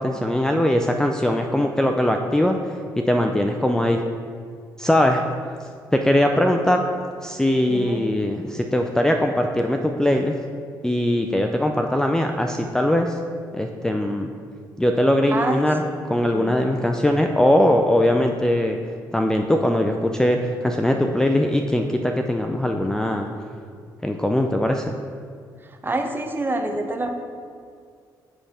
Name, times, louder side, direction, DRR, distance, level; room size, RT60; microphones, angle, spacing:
voice 1, 0.0-4.0 4.8-5.2 5.9-6.8 7.2-10.4 10.8-13.2 13.5-14.3 14.8-18.8 19.1-23.3 24.0-25.0, left 1 dB, 5° left, 3 dB, 0.4 m, -21 dB
voice 2, 7.7-8.1 15.3-16.0 16.3-16.5 25.7-27.1, right 2 dB, 25° right, 4 dB, 0.9 m, -27 dB
8.6 x 3.4 x 5.6 m, 2.2 s
cardioid pair, 75°, 8 cm